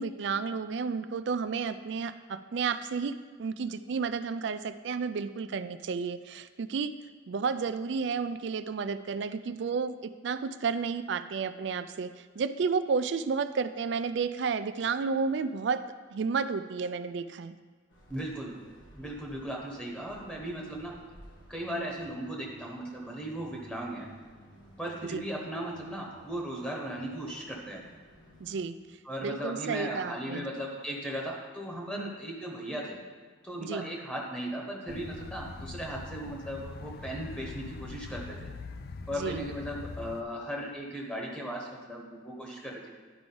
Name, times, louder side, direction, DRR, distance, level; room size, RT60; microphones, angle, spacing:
voice 1, 0.0-6.9 7.3-15.8 16.1-17.6 25.0-25.2 28.4-28.8 29.2-30.5 32.0-32.1 33.6-33.9 39.1-39.4, right 5 dB, 65° right, 12 dB, 0.4 m, -32 dB
sound 1, 17.9-28.6, equal, 80° left, 1.5 m, -55 dB
voice 2, 18.1-18.6 19.0-21.0 21.5-24.1 24.8-27.8 29.0-33.0 33.4-38.5 39.1-43.0, right 1 dB, 5° left, -2 dB, 1.0 m, -37 dB
sound 2, 34.9-40.2, left 3 dB, 55° left, 0.4 m, -42 dB
11.0 x 4.9 x 3.8 m, 1.5 s
head